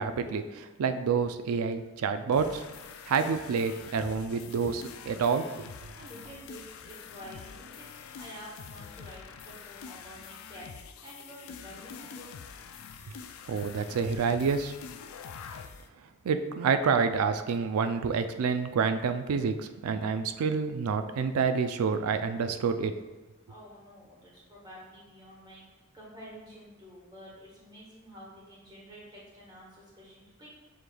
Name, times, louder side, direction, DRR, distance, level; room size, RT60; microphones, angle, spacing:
voice 1, 0.0-2.6 3.1-5.7 13.5-14.7 16.2-22.9, right 5 dB, 80° right, 9 dB, 0.4 m, -28 dB
sound 1, 2.3-15.9, left 6 dB, 70° left, 0.3 m, -46 dB
voice 2, 5.9-7.9 8.2-12.3 23.5-30.5, equal, 20° right, -5 dB, 1.3 m, -49 dB
7.0 x 3.1 x 2.2 m, 1.2 s
head